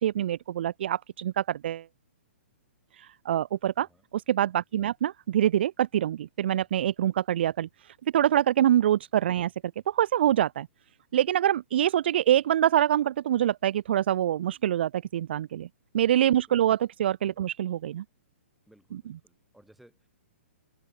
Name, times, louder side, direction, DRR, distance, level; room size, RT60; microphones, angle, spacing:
voice 1, 0.0-1.9 3.0-3.9 4.1-7.7 8.1-9.5 9.9-10.7 11.1-15.7 15.9-18.0, right 11 dB, 50° right, 0.3 m, -25 dB
voice 2, 3.8-4.1 16.3-16.7 18.7-20.1, right 1 dB, ahead, 7.6 m, -60 dB
hypercardioid pair, 160°, 7 cm